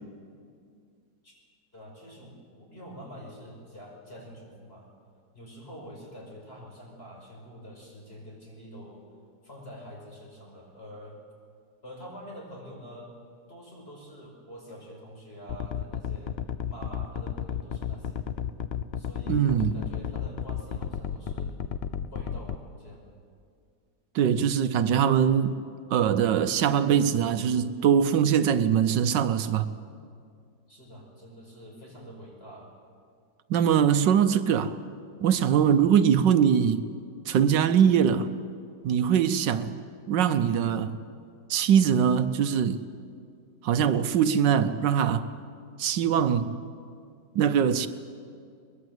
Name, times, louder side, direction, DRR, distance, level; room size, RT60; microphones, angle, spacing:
voice 1, 1.7-4.9 5.3-9.0 9.4-11.2 11.8-13.1 13.5-16.4 16.7-18.2 19.0-21.6 22.1-23.1 30.7-32.7 39.5-39.8, equal, 35° left, 6.1 m, -46 dB
sound 1, 15.5-22.6, left 8 dB, 55° left, 0.7 m, -32 dB
voice 2, 19.3-19.7 24.1-25.6 25.9-29.7 33.5-34.8 35.2-36.8 37.3-38.3 38.8-39.7 40.1-41.0 41.5-42.8 43.6-45.3 45.8-46.6 47.3-47.9, right 8 dB, 80° right, 1.5 m, -22 dB
22.5 x 21.5 x 8.0 m
omnidirectional pair, 1.9 m